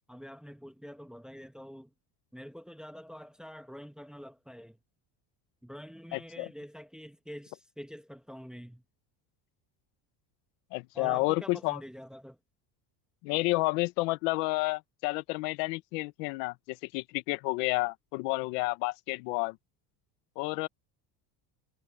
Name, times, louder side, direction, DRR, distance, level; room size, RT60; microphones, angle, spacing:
voice 1, 0.1-1.9 2.3-4.8 5.6-8.8 10.9-12.4, equal, ahead, 1.3 m, -46 dB
voice 2, 6.1-6.5 10.7-11.8 13.2-19.6 20.4-20.7, left 24 dB, 90° left, 1.1 m, -30 dB
cardioid pair, 125°, 46 cm